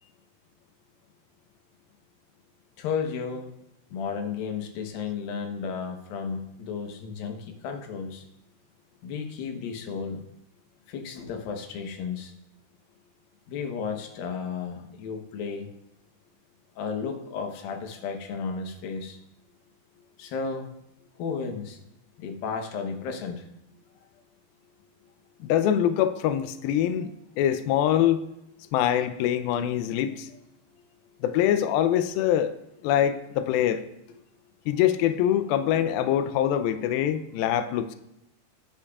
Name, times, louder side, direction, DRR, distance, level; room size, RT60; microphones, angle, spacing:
voice 1, 2.8-3.5 3.9-8.2 9.0-10.2 10.9-12.3 13.5-15.7 16.8-19.2 20.2-20.7 21.2-21.8 22.2-23.5, left 5 dB, 70° left, 4 dB, 2.6 m, -33 dB
voice 2, 25.4-27.1 27.4-28.2 28.7-30.3 31.2-32.5 32.8-33.8 34.7-38.0, left 10 dB, 90° left, 10 dB, 2.1 m, -24 dB
16.0 x 9.9 x 2.4 m, 0.83 s
omnidirectional pair, 4.9 m